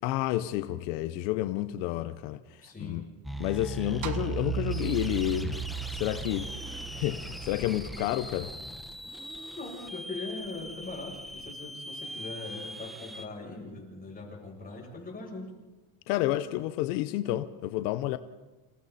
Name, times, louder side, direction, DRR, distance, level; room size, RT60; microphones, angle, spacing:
voice 1, 0.0-2.4 2.8-3.0 3.4-5.6 5.9-6.5 6.9-8.5 16.1-18.2, left 14 dB, 85° left, 1.0 m, -30 dB
voice 2, 2.6-3.1 4.0-4.1 9.5-15.5, left 3 dB, 15° left, 7.9 m, -41 dB
sound 1, 3.2-13.2, equal, ahead, 1.2 m, -40 dB
sound 2, 4.0-8.4, right 17 dB, 35° right, 0.8 m, -37 dB
29.5 x 28.0 x 4.2 m
cardioid pair, 145°, 49 cm